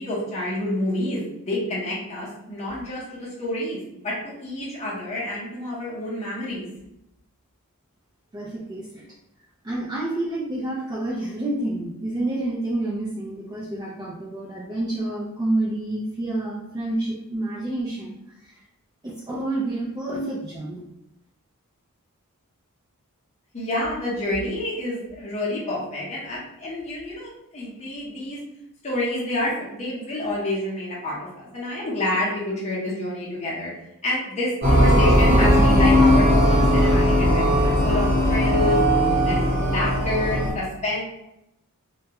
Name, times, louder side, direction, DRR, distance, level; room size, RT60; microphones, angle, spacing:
voice 1, 0.0-6.7 23.5-28.4 28.8-33.7 34.0-38.8 39.2-41.0, left 1 dB, 30° left, -6 dB, 0.7 m, -28 dB
voice 2, 8.3-9.1 9.6-18.2 18.4-18.6 19.0-20.8, right 2 dB, 20° right, -5 dB, 0.4 m, -28 dB
sound 1, 34.6-40.5, equal, 45° right, 0.9 m, -18 dB
2.3 x 2.1 x 2.8 m, 0.84 s
head